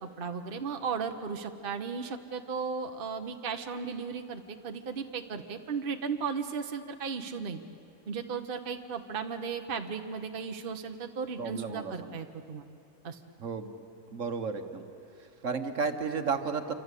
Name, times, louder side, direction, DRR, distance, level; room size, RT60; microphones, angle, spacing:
voice 1, 0.0-7.6 8.1-12.6 13.0-13.2, right 5 dB, 45° right, 5 dB, 1.2 m, -35 dB
voice 2, 11.4-12.2 13.4-13.7 14.1-14.8 15.2-16.7, right 5 dB, 70° right, 7 dB, 1.6 m, -33 dB
27.5 x 25.5 x 8.4 m, 2.7 s
omnidirectional pair, 1.4 m